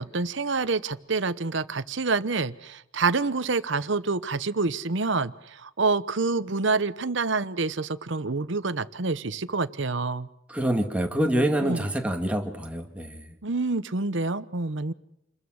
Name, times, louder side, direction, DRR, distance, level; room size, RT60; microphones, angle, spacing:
voice 1, 0.0-10.3 11.6-11.9 13.4-14.9, right 3 dB, 60° right, 15 dB, 0.9 m, -27 dB
voice 2, 10.5-13.2, right 1 dB, 5° right, 3 dB, 2.2 m, -26 dB
28.5 x 21.5 x 6.4 m, 0.83 s
head